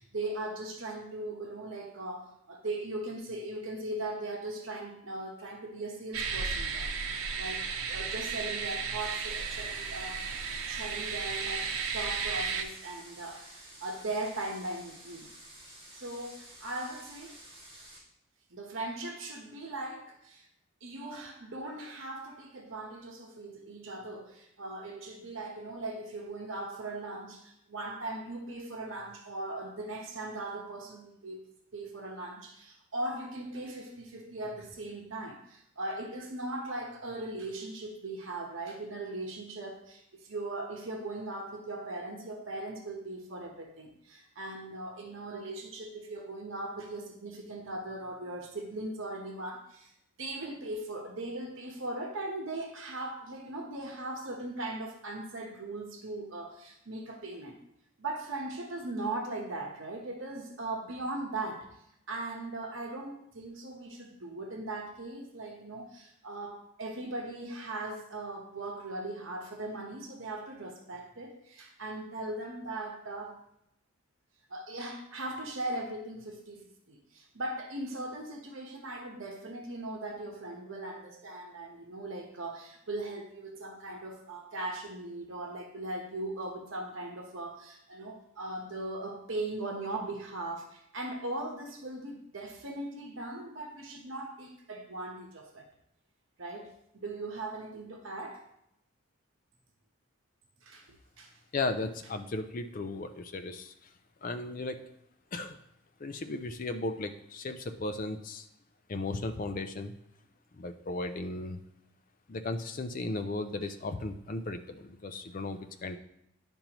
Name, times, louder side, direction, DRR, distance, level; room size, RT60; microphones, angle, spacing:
voice 1, 0.0-6.9 7.4-15.3 15.9-17.4 18.5-20.5 20.8-31.4 31.7-49.9 50.2-57.6 58.0-61.7 62.1-73.4 74.5-95.6 96.4-98.4 100.6-100.9 101.2-101.3, right 2 dB, 70° right, 1 dB, 1.1 m, -39 dB
sound 1, 6.1-12.6, right 5 dB, 90° right, 0.8 m, -34 dB
sound 2, 9.0-18.0, right 1 dB, 25° right, 3.2 m, -51 dB
voice 2, 101.5-103.9 104.2-104.8 105.3-105.6 106.0-108.5 108.9-109.9 110.6-111.6 112.3-116.0, left 2 dB, 40° left, 8 dB, 0.5 m, -36 dB
10.0 x 5.3 x 3.0 m, 0.78 s
head